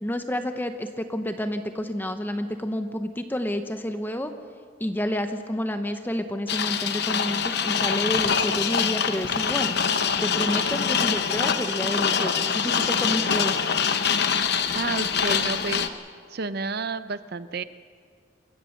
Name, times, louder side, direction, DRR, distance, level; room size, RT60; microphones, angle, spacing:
voice 1, 0.0-4.3 4.8-9.7 10.2-13.6, equal, 10° left, 7 dB, 0.9 m, -29 dB
sound 1, 6.5-15.9, left 6 dB, 60° left, 0.9 m, -24 dB
voice 2, 14.7-15.8 16.3-17.6, right 4 dB, 55° right, 13 dB, 0.6 m, -30 dB
28.0 x 15.0 x 6.6 m, 2.1 s
head